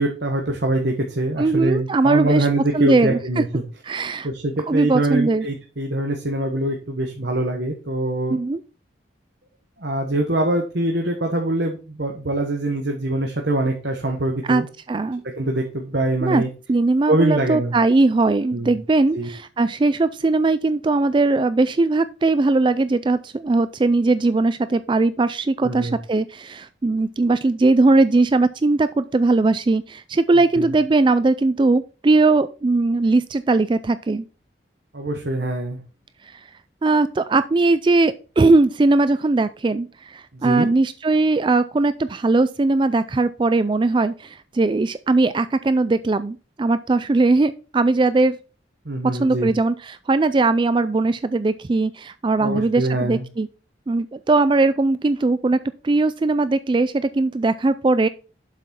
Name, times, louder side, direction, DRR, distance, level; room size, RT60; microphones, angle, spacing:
voice 1, 0.0-3.6 3.9-8.4 9.8-14.7 15.2-16.5 17.1-17.7 18.5-18.8 19.1-19.4 25.6-26.0 30.5-30.7 34.9-35.8 40.3-40.7 48.8-49.5 52.4-53.2, right 2 dB, 65° right, 2 dB, 1.3 m, -24 dB
voice 2, 1.4-2.5 2.7-3.4 3.9-4.3 4.7-5.5 8.3-8.6 14.5-14.6 14.9-15.2 16.2-16.4 16.7-34.2 36.3-36.4 36.8-48.4 49.2-53.5 53.9-55.6 55.8-58.1, right 3 dB, 25° right, 14 dB, 0.3 m, -19 dB
7.7 x 6.0 x 4.3 m, 0.35 s
head